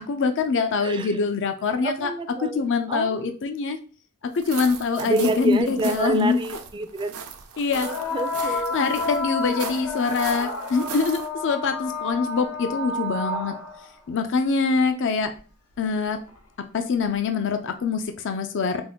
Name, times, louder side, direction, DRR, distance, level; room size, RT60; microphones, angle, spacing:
voice 1, 0.1-2.1 2.4-3.8 4.3-6.4 7.6-7.9 8.4-13.5 14.1-15.3 15.8-16.2 16.7-18.8, left 4 dB, 55° left, 7 dB, 0.5 m, -24 dB
voice 2, 0.8-1.2 1.8-3.3 5.0-7.2 7.8-8.8, right 2 dB, 20° right, 8 dB, 0.4 m, -28 dB
sound 1, 4.3-11.3, right 7 dB, 80° right, 0.7 m, -39 dB
sound 2, 5.6-5.7 7.7-13.9 15.3-15.4 16.3-16.4, left 3 dB, 85° left, 1.0 m, -30 dB
5.2 x 2.5 x 3.6 m, 0.39 s
head